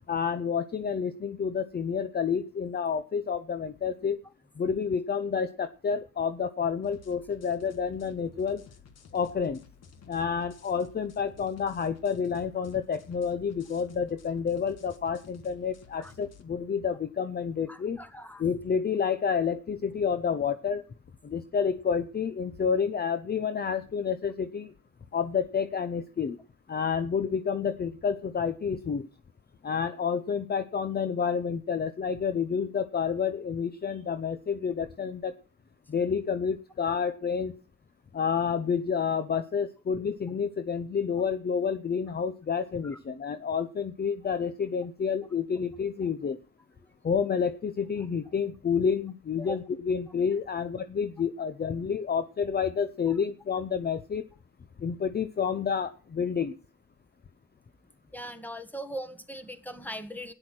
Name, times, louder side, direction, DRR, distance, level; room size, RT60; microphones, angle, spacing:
voice 1, 0.1-4.2 4.6-8.6 9.1-9.6 10.1-18.0 18.4-20.8 21.2-24.7 25.1-26.4 26.7-29.1 29.6-35.3 35.9-37.5 38.1-46.4 47.0-54.2 54.8-56.6, left 6 dB, 35° left, 11 dB, 0.7 m, -29 dB
sound 1, 6.8-16.4, left 6 dB, 60° left, 1.7 m, -53 dB
voice 2, 17.7-18.4 42.8-43.0 49.4-49.6 58.1-60.3, equal, 5° left, 8 dB, 1.7 m, -40 dB
12.5 x 9.9 x 6.2 m, 0.38 s
cardioid pair, 105°, 30 cm